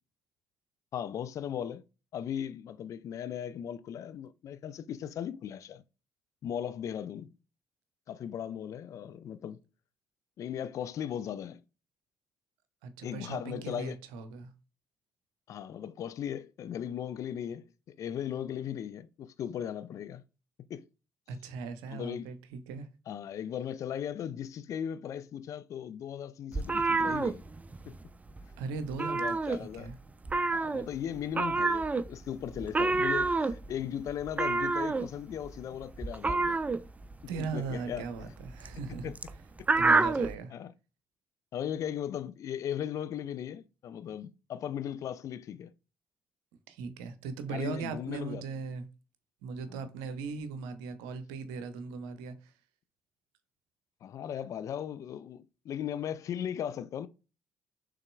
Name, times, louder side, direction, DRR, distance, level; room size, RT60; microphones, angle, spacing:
voice 1, 0.9-1.8 2.1-5.8 6.4-7.3 8.1-9.6 10.4-11.6 13.0-14.0 15.5-20.2 20.7-20.8 21.9-22.3 23.1-27.4 27.9-28.0 29.0-29.9 30.5-36.6 37.4-38.1 39.0-39.1 40.5-40.7 41.5-45.7 47.5-48.4 49.7-49.9 54.0-57.1, left 9 dB, 55° left, 0.4 m, -37 dB
voice 2, 12.8-14.5 21.3-22.9 28.6-30.0 37.3-39.1 39.8-40.5 46.7-48.9 49.4-52.5, right 5 dB, 75° right, 0.7 m, -39 dB
sound 1, 26.5-28.0 28.3-28.5 28.8-29.9 30.2-40.3, right 3 dB, 20° right, 0.5 m, -29 dB
6.5 x 3.5 x 2.2 m
figure-of-eight pair, 45°, 7 cm